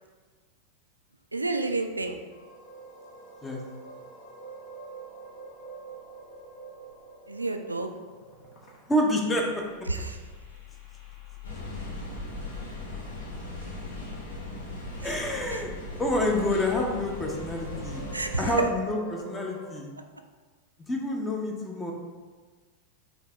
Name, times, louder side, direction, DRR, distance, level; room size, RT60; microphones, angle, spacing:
voice 1, 1.3-2.2 7.3-7.9 9.9-10.2 15.0-15.2 15.5-15.6 18.1-18.5, right 3 dB, 80° right, 6 dB, 0.3 m, -30 dB
sound 1, 2.3-19.7, equal, 45° left, 0.9 m, -47 dB
voice 2, 8.9-9.6 15.0-15.7 16.0-18.0 18.4-19.9 20.9-21.9, left 1 dB, 15° left, 0 dB, 0.8 m, -28 dB
sound 2, 11.4-18.6, left 1 dB, 75° left, 1.2 m, -38 dB
5.5 x 2.8 x 3.4 m, 1.4 s
figure-of-eight pair, 90°, 0 cm